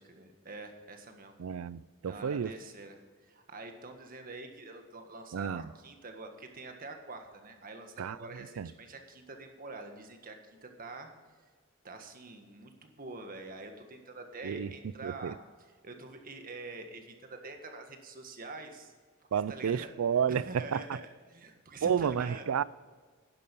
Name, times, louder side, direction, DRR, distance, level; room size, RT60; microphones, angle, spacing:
voice 1, 0.0-1.4 2.1-11.1 11.8-15.3 15.8-18.9 19.3-19.9 20.3-22.5, right 3 dB, 45° right, 1.7 m, -46 dB
voice 2, 1.4-2.5 5.3-5.7 8.0-8.2 8.6-8.7 14.4-14.7 15.0-15.3 19.3-20.8 21.8-22.6, right 7 dB, 80° right, 0.4 m, -31 dB
11.0 x 11.0 x 5.4 m
head